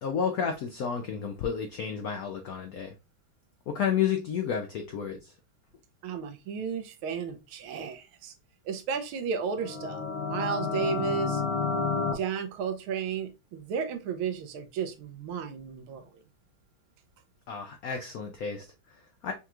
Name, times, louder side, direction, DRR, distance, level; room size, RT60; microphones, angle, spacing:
voice 1, 0.0-2.9 3.7-5.3 17.5-19.3, left 7 dB, 90° left, 0.7 m, -31 dB
voice 2, 6.0-8.3 8.6-10.0 10.3-11.4 12.1-16.1, right 6 dB, 85° right, 1.6 m, -33 dB
sound 1, 9.6-12.1, left 5 dB, 60° left, 0.8 m, -30 dB
5.5 x 2.9 x 2.4 m
omnidirectional pair, 2.3 m